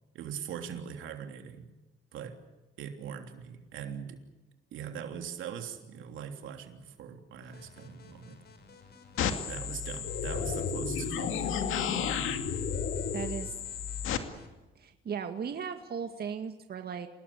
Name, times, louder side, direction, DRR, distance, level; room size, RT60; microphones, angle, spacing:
voice 1, 0.1-1.7 2.1-2.4 2.8-4.2 4.7-8.4 9.4-11.7, right 8 dB, 80° right, 5 dB, 3.2 m, -41 dB
sound 1, 7.4-10.8 11.7-14.5, left 4 dB, 55° left, 5.8 m, -55 dB
sound 2, 9.2-14.2, left 7 dB, 80° left, 2.5 m, -32 dB
voice 2, 13.1-13.6 14.8-17.1, right 6 dB, 50° right, 6 dB, 2.0 m, -37 dB
28.0 x 19.0 x 8.7 m, 1.1 s
cardioid pair, 90°, 20 cm